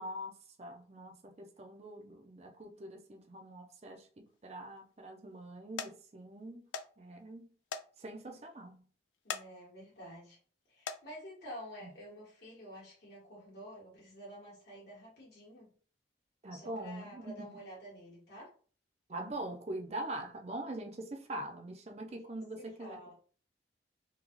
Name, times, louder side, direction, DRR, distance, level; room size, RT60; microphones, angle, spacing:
voice 1, 0.0-6.6 7.0-7.5 8.0-8.8 11.8-11.9 16.4-17.5 19.1-23.1, right 1 dB, 35° right, 0.6 m, -43 dB
sound 1, 4.3-4.8 5.3-5.5 5.8-5.9 6.7-6.9 7.2-7.3 7.7-7.9 8.3-8.4 9.1-9.5 10.0-10.2 10.7-11.0 12.0-12.1 12.6-12.7, left 6 dB, 90° left, 0.3 m, -40 dB
voice 2, 9.2-10.4 10.7-15.7 16.5-18.5 22.6-23.1, equal, 60° left, 1.7 m, -50 dB
3.7 x 2.3 x 3.1 m
head